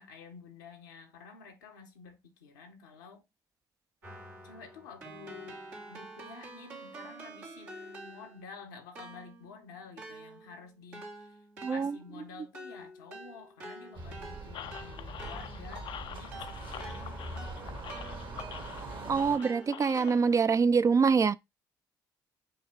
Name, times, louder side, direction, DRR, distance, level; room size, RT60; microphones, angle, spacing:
voice 1, 0.0-3.2 4.4-11.3 11.7-17.8, left 5 dB, 90° left, 0.9 m, -50 dB
Keyboard (musical), 4.0-8.5 9.0-18.9 19.4-20.6, right 2 dB, 90° right, 2.1 m, -48 dB
voice 2, 11.6-12.0 19.1-21.4, right 5 dB, 35° right, 0.3 m, -25 dB
sound 1, 13.9-19.4, right 2 dB, 55° right, 1.5 m, -42 dB
hiking gravel and dried leaves, 14.5-20.4, left 10 dB, 60° left, 0.4 m, -46 dB
5.5 x 2.4 x 3.5 m
hypercardioid pair, 50°, 10 cm